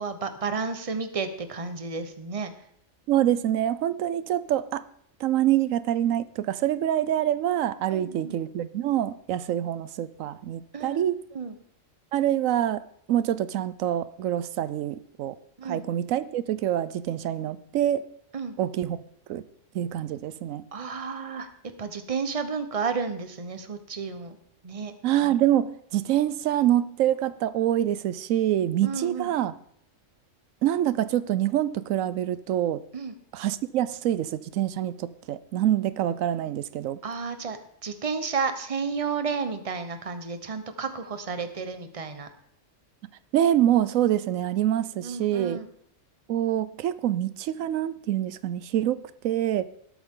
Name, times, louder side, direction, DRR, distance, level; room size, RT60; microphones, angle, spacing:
voice 1, 0.0-2.5 7.9-8.4 10.7-11.1 11.3-11.6 15.6-15.8 18.3-18.6 20.7-21.5 21.8-24.4 24.6-24.9 28.8-29.3 32.9-33.1 37.0-42.3 45.0-45.7, right 5 dB, 30° right, 9 dB, 1.0 m, -32 dB
voice 2, 3.1-4.8 5.2-11.2 12.1-12.8 13.1-15.3 15.7-18.0 18.6-19.0 19.3-19.4 19.7-20.6 25.0-29.5 30.6-32.8 33.3-37.0 43.3-45.6 46.3-49.7, right 12 dB, 90° right, 15 dB, 1.0 m, -25 dB
18.5 x 8.6 x 3.7 m, 0.69 s
omnidirectional pair, 1.3 m